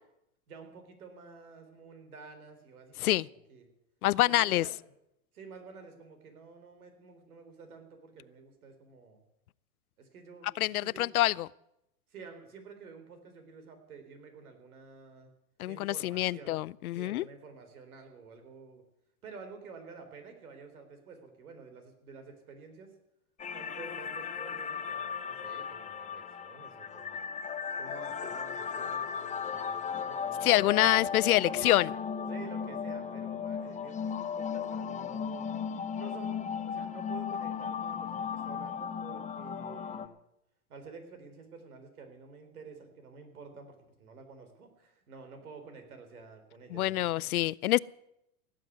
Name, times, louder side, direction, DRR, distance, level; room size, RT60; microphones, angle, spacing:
voice 1, 0.5-3.7 4.2-4.8 5.3-9.2 10.0-11.1 12.1-15.3 15.7-16.6 16.9-18.8 19.2-22.9 23.5-27.3 27.8-31.0 31.4-31.9 32.3-35.5 35.9-40.1 40.7-47.3, right 4 dB, 85° right, 4.1 m, -50 dB
voice 2, 4.0-4.6 10.6-11.5 15.6-17.2 30.4-31.9 46.7-47.8, left 15 dB, 85° left, 0.6 m, -26 dB
sound 1, 23.4-40.1, left 7 dB, 15° left, 0.7 m, -36 dB
17.5 x 7.7 x 9.5 m
hypercardioid pair, 115°, 43 cm